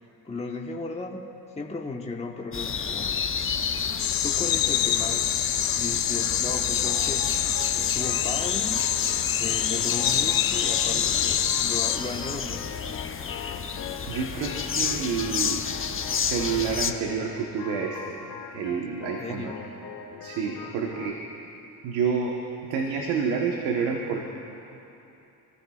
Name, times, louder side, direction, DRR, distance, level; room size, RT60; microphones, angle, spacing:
voice 1, 0.2-1.3 1.5-3.3 4.2-5.3 5.8-7.4 7.7-9.0 9.4-12.8 19.2-19.7 20.6-20.8, left 3 dB, 15° left, 0 dB, 1.3 m, -35 dB
sound 1, 2.5-16.9, left 6 dB, 30° left, 0.9 m, -31 dB
sound 2, 4.0-12.0, left 10 dB, 60° left, 1.0 m, -26 dB
Organ, 6.1-21.1, left 7 dB, 80° left, 2.3 m, -42 dB
voice 2, 14.1-15.7 16.2-18.2 18.5-19.5 20.2-21.2 21.8-24.2, right 6 dB, 85° right, 0 dB, 1.4 m, -29 dB
26.0 x 15.0 x 2.5 m, 2.9 s
supercardioid pair, 80°, 40 cm